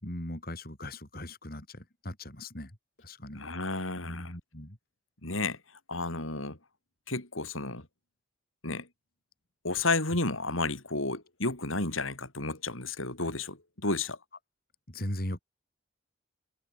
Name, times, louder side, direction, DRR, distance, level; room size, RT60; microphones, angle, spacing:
voice 1, 0.0-2.7 3.0-3.4 4.0-4.8 14.9-15.4, left 1 dB, 50° left, 4.8 m, -39 dB
voice 2, 3.3-4.3 5.2-5.6 5.9-6.6 7.1-7.8 8.6-8.9 9.6-14.2, left 3 dB, 90° left, 5.6 m, -32 dB
head